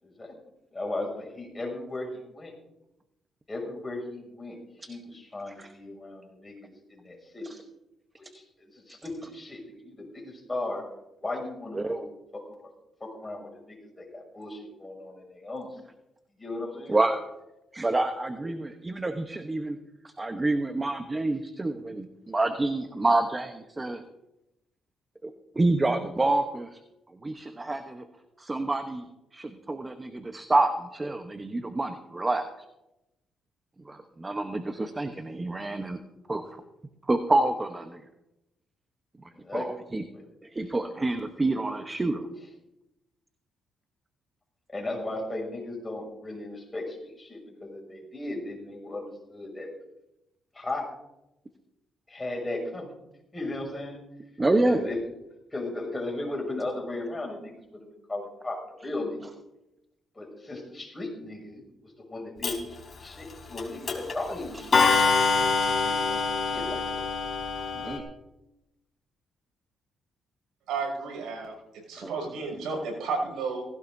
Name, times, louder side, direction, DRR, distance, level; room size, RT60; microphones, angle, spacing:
voice 1, 0.0-0.3 0.7-2.5 3.5-4.6 4.9-7.5 8.2-10.9 11.2-12.7 13.0-15.8 16.4-17.0 39.3-39.7 40.1-40.2 44.7-49.7 50.5-50.9 52.1-52.9 53.3-54.0 54.7-55.0 55.5-57.5 58.1-59.2 60.1-64.9 65.8-67.1, left 2 dB, 20° left, 0 dB, 6.6 m, -36 dB
voice 2, 16.9-17.2 17.7-19.8 20.0-24.0 25.2-26.8 27.2-28.0 28.4-29.1 29.3-32.5 33.8-36.0 36.3-36.4 37.1-38.0 39.5-40.0 40.4-42.3 54.4-54.9 67.8-68.0 72.0-72.1, right 2 dB, 20° right, 6 dB, 1.0 m, -28 dB
Clock, 62.4-62.5 63.6-63.7 63.9-64.1 64.7-68.0, left 4 dB, 40° left, 4.1 m, -24 dB
voice 3, 70.7-73.7, right 4 dB, 80° right, 1 dB, 6.5 m, -32 dB
19.0 x 16.5 x 2.7 m, 0.93 s
cardioid pair, 90°, 0 cm